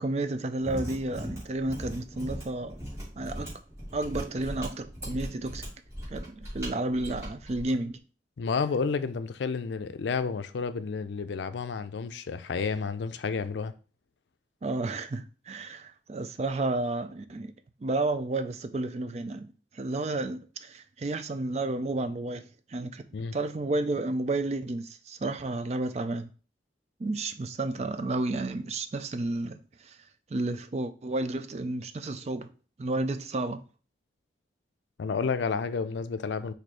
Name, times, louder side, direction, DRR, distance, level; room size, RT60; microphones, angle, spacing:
voice 1, 0.0-2.8 3.2-3.5 3.9-5.6 6.1-8.0 14.6-17.5 17.8-22.4 22.7-23.1 23.3-26.3 27.0-30.0 30.3-32.5 32.8-33.6, right 2 dB, 35° right, 0.4 m, -31 dB
Mechanisms, 0.5-7.7, equal, 15° right, 2.3 m, -39 dB
voice 2, 8.4-13.7 23.1-23.4 35.0-36.5, left 5 dB, 75° left, 0.4 m, -31 dB
4.6 x 2.7 x 4.2 m
head